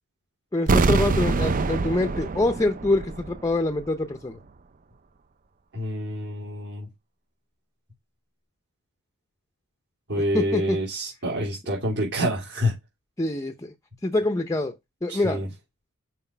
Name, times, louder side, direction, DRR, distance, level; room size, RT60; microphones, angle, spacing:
voice 1, 0.5-4.4 10.1-10.8 13.2-13.7 14.0-15.5, left 2 dB, 15° left, 0.6 m, -25 dB
sound 1, 0.7-3.6 3.8-3.9, right 3 dB, 40° right, 0.5 m, -24 dB
voice 2, 5.7-6.9 10.1-12.7 15.1-15.5, equal, 55° right, 2.9 m, -27 dB
6.0 x 4.8 x 4.4 m
head